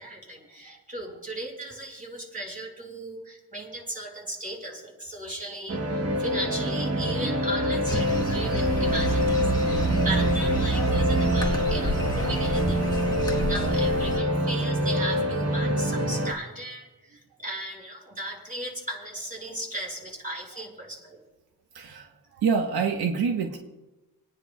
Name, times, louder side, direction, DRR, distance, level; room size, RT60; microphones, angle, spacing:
voice 1, 0.0-12.8 13.5-21.2, right 1 dB, 20° right, -1 dB, 5.3 m, -36 dB
sound 1, 5.7-16.3, equal, 40° right, 1.2 m, -26 dB
sound 2, 7.9-14.2, right 2 dB, 10° left, 1.6 m, -28 dB
voice 2, 21.7-22.1 22.4-23.6, right 6 dB, 85° right, 3 dB, 1.2 m, -26 dB
29.0 x 9.8 x 2.3 m, 1.1 s
wide cardioid pair, 105°, 37 cm